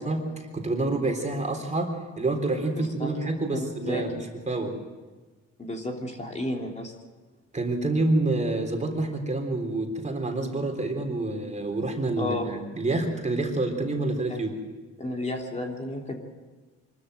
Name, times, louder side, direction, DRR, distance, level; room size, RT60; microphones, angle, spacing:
voice 1, 0.1-4.8 7.5-14.6, right 2 dB, 25° right, 3 dB, 3.6 m, -28 dB
voice 2, 2.7-3.1 3.8-4.0 5.6-6.9 12.2-12.5 14.3-14.4 15.0-16.2, left 1 dB, 25° left, 1 dB, 3.2 m, -32 dB
25.0 x 13.0 x 8.0 m, 1.3 s
cardioid pair, 90°, 30 cm